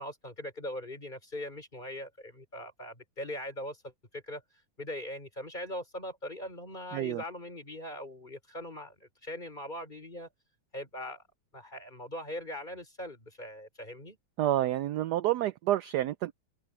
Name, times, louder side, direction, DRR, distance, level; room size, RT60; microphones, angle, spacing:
voice 1, 0.0-4.4 4.8-10.3 10.7-11.2 11.5-14.2, left 1 dB, 20° left, 4.7 m, -41 dB
voice 2, 6.9-7.2 14.4-16.3, right 13 dB, 75° right, 0.9 m, -29 dB
omnidirectional pair, 2.3 m